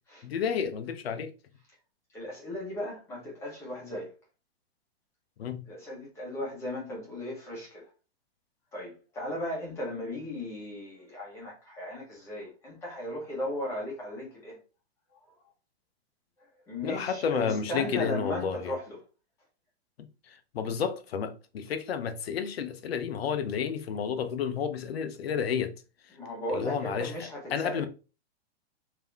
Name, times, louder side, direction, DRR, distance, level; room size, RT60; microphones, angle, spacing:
voice 1, 0.2-1.3 5.4-5.6 16.8-18.7 20.0-25.7 26.5-27.1 27.5-27.9, left 7 dB, 65° left, 0.7 m, -31 dB
voice 2, 2.1-4.1 5.7-7.9 8.7-14.6 16.7-19.0 26.1-27.9, left 1 dB, 10° left, 1.0 m, -36 dB
3.7 x 2.9 x 3.4 m
hypercardioid pair, 175°, 33 cm